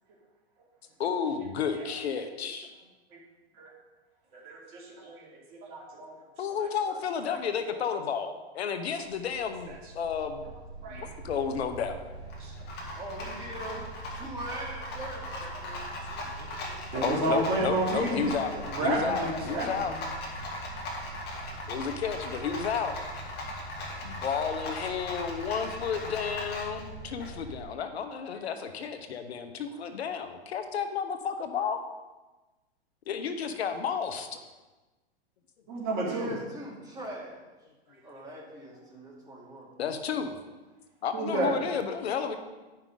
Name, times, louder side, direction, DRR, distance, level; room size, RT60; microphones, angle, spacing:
voice 1, 1.0-2.7 6.4-10.5 10.9-12.0 16.2-18.5 18.8-20.0 21.7-23.0 24.0-31.8 33.1-34.3 39.8-40.4 41.0-42.4, left 6 dB, 80° left, 8 dB, 1.0 m, -32 dB
voice 2, 4.3-6.1 10.8-11.1 12.4-12.5 15.8-15.9 16.5-20.0 35.7-36.3 41.1-41.6, right 2 dB, 40° right, -3 dB, 2.7 m, -31 dB
Rattle, 9.0-27.6, equal, 30° left, 1.8 m, -39 dB
voice 3, 13.0-13.8 14.1-16.0 36.0-37.4 38.0-39.7, right 1 dB, 10° right, -4 dB, 2.3 m, -42 dB
10.5 x 5.8 x 3.8 m, 1.2 s
hypercardioid pair, 120°, 32 cm